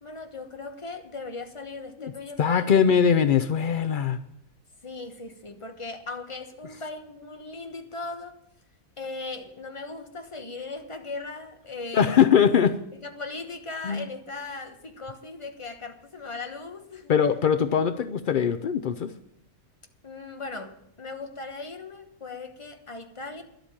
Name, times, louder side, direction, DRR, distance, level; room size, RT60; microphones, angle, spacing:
voice 1, 0.0-2.7 4.8-8.4 9.0-12.1 13.0-17.1 20.0-23.4, left 3 dB, 25° left, 1.0 m, -38 dB
voice 2, 2.4-4.2 11.9-12.8 13.8-14.0 17.1-19.1, left 7 dB, 80° left, 0.4 m, -21 dB
11.5 x 8.1 x 8.7 m
omnidirectional pair, 1.6 m